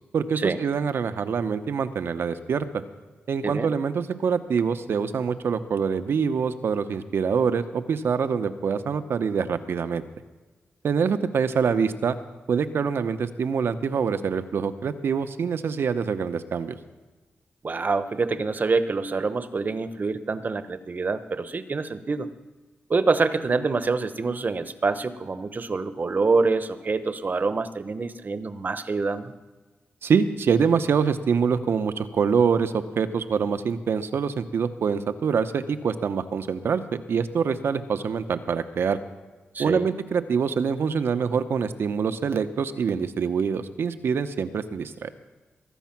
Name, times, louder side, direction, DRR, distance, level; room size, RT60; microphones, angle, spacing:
voice 1, 0.1-2.7 3.3-10.0 10.8-12.2 12.5-16.8 30.0-39.0 39.6-45.1, right 6 dB, 75° right, 10 dB, 0.9 m, -25 dB
voice 2, 17.6-22.3 22.9-29.3 39.5-39.9, right 4 dB, 50° right, 12 dB, 1.0 m, -26 dB
21.0 x 8.2 x 6.0 m, 1.2 s
cardioid pair, 55°, 4 cm